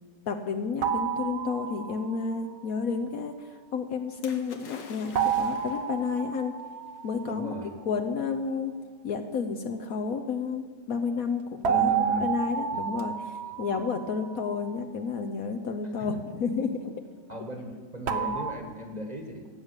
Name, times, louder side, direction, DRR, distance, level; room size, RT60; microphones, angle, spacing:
voice 1, 0.3-6.5 7.0-7.5 7.9-8.7 9.0-11.9 12.2-13.1 13.6-16.9 18.1-18.3, left 5 dB, 60° left, 5 dB, 1.1 m, -31 dB
sound 1, 0.8-2.3 5.1-7.6 11.6-14.8 18.1-18.5, right 7 dB, 50° right, 0.8 m, -30 dB
Splash splatter, 4.2-6.0 7.0-7.1, left 5 dB, 85° left, 1.9 m, -46 dB
voice 2, 7.2-7.7 11.7-12.3 12.7-12.9 16.0-16.1 17.3-19.5, equal, 25° right, 3 dB, 1.3 m, -36 dB
17.0 x 6.8 x 8.1 m, 1.5 s
omnidirectional pair, 1.9 m